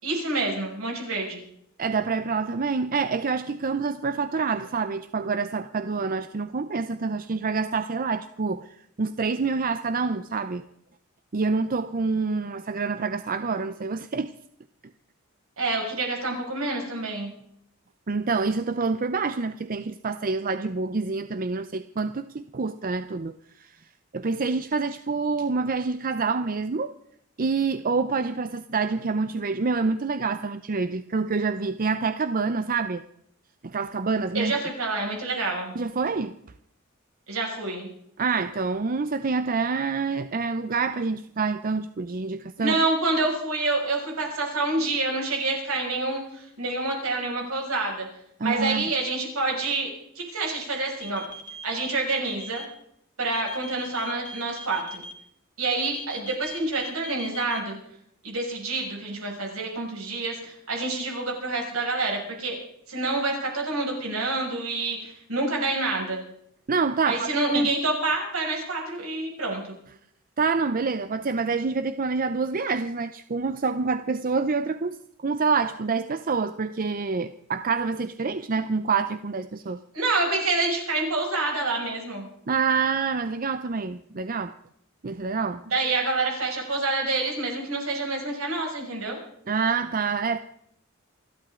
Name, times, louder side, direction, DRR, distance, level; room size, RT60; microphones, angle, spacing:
voice 1, 0.0-1.4 15.6-17.3 34.3-35.7 37.3-37.9 42.6-48.1 48.4-51.2 51.6-52.6 53.2-55.0 55.6-57.8 58.2-62.6 62.9-66.2 67.0-69.7 79.9-82.3 85.6-89.2, right 2 dB, 80° right, 0 dB, 6.2 m, -27 dB
voice 2, 1.8-10.6 11.3-14.3 18.1-23.8 24.1-26.9 27.4-33.0 33.6-34.5 35.8-36.4 38.2-42.8 48.4-48.8 66.7-67.7 70.4-79.8 82.5-84.5 85.0-85.6 89.5-90.4, right 4 dB, 40° right, 11 dB, 0.6 m, -27 dB
sound 1, 51.0-52.6 53.3-55.1 55.8-57.6, left 1 dB, 40° left, 1.9 m, -40 dB
28.5 x 12.0 x 3.8 m, 0.71 s
head